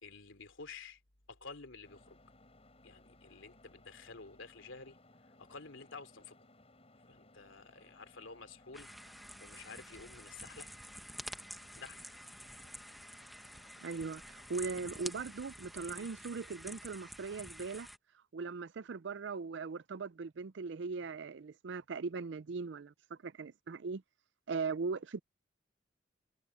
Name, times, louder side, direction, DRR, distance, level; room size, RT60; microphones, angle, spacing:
voice 1, 0.0-1.0 1.3-2.2 2.8-5.0 5.4-6.4 7.1-8.9 9.4-10.7 11.8-12.1, left 4 dB, 80° left, 3.0 m, -51 dB
sound 1, 1.8-15.1, left 2 dB, 30° left, 5.6 m, -63 dB
sound 2, 8.7-18.0, equal, ahead, 0.8 m, -49 dB
voice 2, 13.8-17.9 18.3-24.0 24.5-25.2, right 4 dB, 65° right, 0.5 m, -39 dB
head